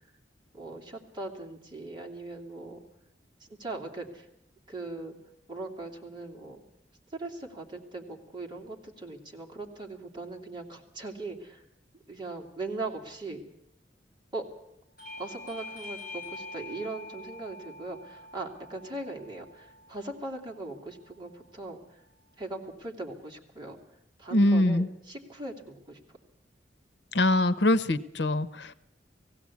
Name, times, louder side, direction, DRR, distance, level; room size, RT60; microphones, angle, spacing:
voice 1, 0.5-2.8 3.4-4.3 4.7-5.1 5.5-6.6 7.1-11.6 12.1-13.4 14.3-14.4 15.2-22.0 22.4-23.8 24.2-26.0, right 2 dB, 25° right, 0 dB, 2.9 m, -39 dB
Bell / Doorbell, 15.0-20.2, left 2 dB, 50° left, 5.4 m, -45 dB
voice 2, 24.3-24.9 27.1-28.7, left 1 dB, 80° left, 15 dB, 0.9 m, -23 dB
19.0 x 16.0 x 8.5 m, 0.78 s
head